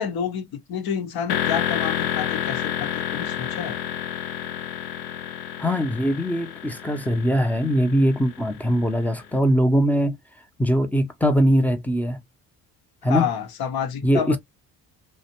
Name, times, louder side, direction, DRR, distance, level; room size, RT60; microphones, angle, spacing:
voice 1, 0.0-3.8 13.0-14.4, left 8 dB, 55° left, 0.9 m, -29 dB
sound 1, 1.3-9.1, left 9 dB, 85° left, 0.5 m, -29 dB
voice 2, 5.6-10.2 10.6-12.2 13.0-13.3 14.0-14.4, equal, 5° left, 0.7 m, -21 dB
2.4 x 2.2 x 2.9 m
hypercardioid pair, 50°, 44 cm